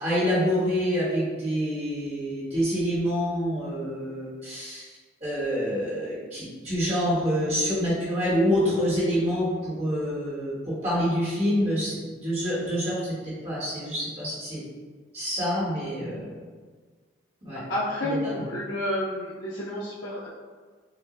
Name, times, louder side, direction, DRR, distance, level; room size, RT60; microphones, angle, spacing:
voice 1, 0.0-4.9 5.2-14.6 15.1-16.3 17.4-17.6 18.0-18.4, equal, 30° right, -9 dB, 1.4 m, -27 dB
voice 2, 17.7-20.3, left 1 dB, 80° left, -7 dB, 0.6 m, -30 dB
6.1 x 2.4 x 2.5 m, 1.5 s
head